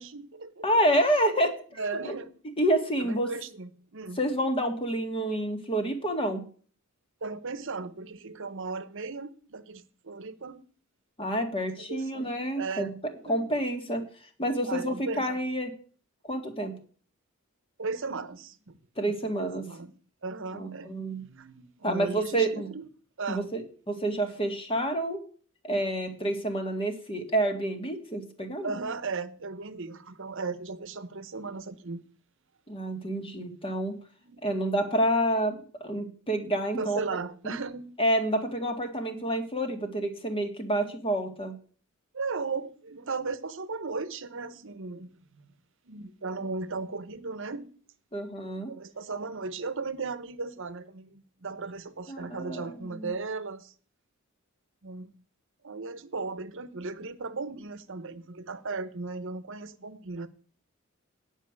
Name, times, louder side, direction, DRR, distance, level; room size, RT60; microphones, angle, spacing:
voice 1, 0.0-0.7 1.8-2.4 3.0-4.2 7.2-10.6 11.6-13.5 14.7-15.4 17.8-18.8 19.2-19.9 20.2-22.9 23.2-23.5 28.6-32.0 33.1-33.3 34.2-34.4 36.8-38.0 42.1-45.2 45.8-47.7 48.5-53.7 54.8-55.1 55.6-60.3, right 4 dB, 65° right, 1.0 m, -36 dB
voice 2, 0.6-1.5 2.0-2.2 2.6-3.3 4.2-6.4 11.2-12.9 13.3-14.0 14.4-15.7 16.3-16.7 19.0-19.6 20.5-21.2 21.8-22.7 23.3-25.2 25.6-28.7 32.7-33.9 34.4-37.0 37.4-37.6 38.0-41.5 48.1-48.7 52.1-53.1, right 1 dB, 25° left, 2.0 m, -28 dB
9.8 x 5.6 x 8.1 m
head